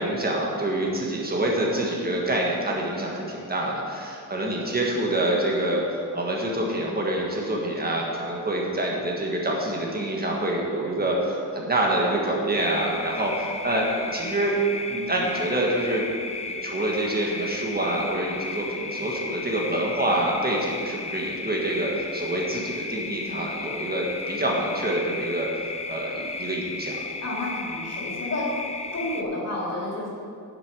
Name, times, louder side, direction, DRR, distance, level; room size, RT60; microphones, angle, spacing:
voice 1, 0.0-14.6 14.9-16.0 16.5-25.5 25.8-27.0, right 1 dB, 25° right, -2 dB, 1.5 m, -26 dB
sound 1, 12.5-29.2, left 3 dB, 20° left, 0.4 m, -34 dB
voice 2, 27.2-28.5 28.9-30.1, left 2 dB, 45° left, -5 dB, 3.2 m, -30 dB
9.9 x 7.7 x 6.1 m, 2.4 s
wide cardioid pair, 165°, 37 cm